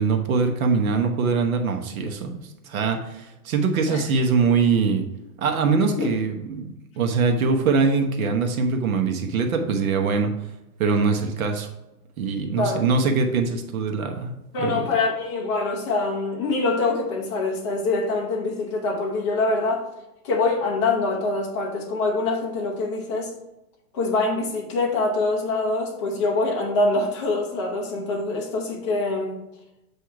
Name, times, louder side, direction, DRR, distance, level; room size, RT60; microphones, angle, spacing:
voice 1, 0.0-5.1 5.4-10.3 10.8-11.7 12.2-14.3 14.6-14.8 27.9-28.1, right 4 dB, 60° right, 4 dB, 1.0 m, -23 dB
voice 2, 14.5-19.9 20.2-23.3 23.9-29.3, left 3 dB, 20° left, -2 dB, 0.6 m, -24 dB
7.9 x 2.7 x 4.6 m, 0.92 s
hypercardioid pair, 170°, 48 cm